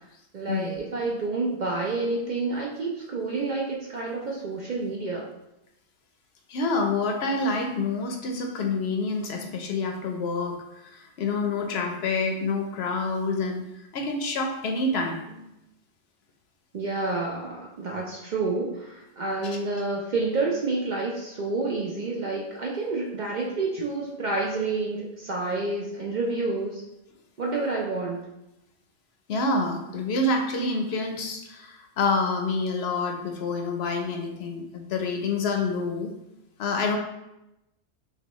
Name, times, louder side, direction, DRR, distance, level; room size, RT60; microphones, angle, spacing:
voice 1, 0.3-5.3 16.7-26.8 27.4-28.2, right 3 dB, 55° right, -2 dB, 0.5 m, -29 dB
voice 2, 6.5-10.6 10.9-13.6 13.9-15.5 19.4-19.6 29.3-36.1 36.6-37.0, left 3 dB, 65° left, 3 dB, 0.8 m, -27 dB
5.6 x 2.2 x 3.0 m, 0.91 s
omnidirectional pair, 1.2 m